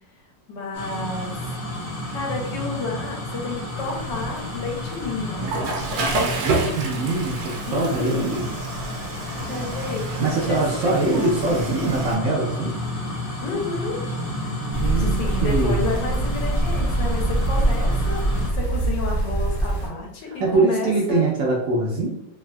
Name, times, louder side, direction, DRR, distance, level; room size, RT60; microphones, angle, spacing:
voice 1, 0.5-1.3 2.1-5.5 7.7-8.4 9.5-10.1 10.4-11.4 13.4-14.0 14.8-18.2 18.5-21.3, left 3 dB, 80° left, 0 dB, 1.4 m, -31 dB
sound 1, 0.7-18.5, left 1 dB, 55° left, 1.1 m, -31 dB
Water / Toilet flush, 3.8-12.1, right 2 dB, 90° right, 1.3 m, -30 dB
voice 2, 6.4-8.6 10.2-12.7 14.7-15.9 20.4-22.1, right 3 dB, 65° right, -3 dB, 0.9 m, -23 dB
sound 2, 14.7-19.9, right 2 dB, 35° left, 0.5 m, -23 dB
3.4 x 2.4 x 2.2 m, 0.81 s
omnidirectional pair, 1.9 m